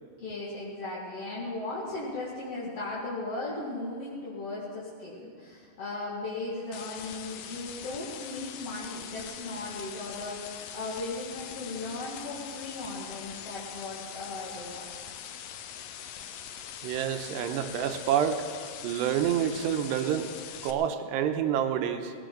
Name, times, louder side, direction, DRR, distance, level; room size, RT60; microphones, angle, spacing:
voice 1, 0.2-14.9, left 2 dB, 45° left, -7 dB, 2.4 m, -37 dB
sound 1, 6.7-20.7, left 9 dB, 90° left, 2.0 m, -42 dB
voice 2, 16.8-18.4 18.8-20.3 20.6-22.1, right 9 dB, 85° right, 6 dB, 2.9 m, -28 dB
19.5 x 16.5 x 3.9 m, 2.1 s
omnidirectional pair, 5.0 m